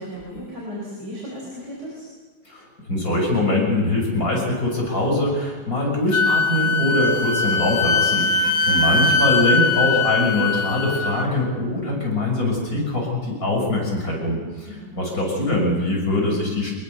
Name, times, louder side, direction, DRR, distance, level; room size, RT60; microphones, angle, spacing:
voice 1, 0.0-2.1 8.4-8.9 14.7-15.0, equal, 50° right, -3 dB, 5.4 m, -35 dB
voice 2, 2.5-16.7, left 1 dB, 40° left, -1 dB, 6.9 m, -23 dB
Wind instrument woodwind instrument, 6.1-11.3, left 3 dB, 65° left, 1.9 m, -21 dB
24.5 x 20.5 x 6.8 m, 1.4 s
omnidirectional pair, 2.4 m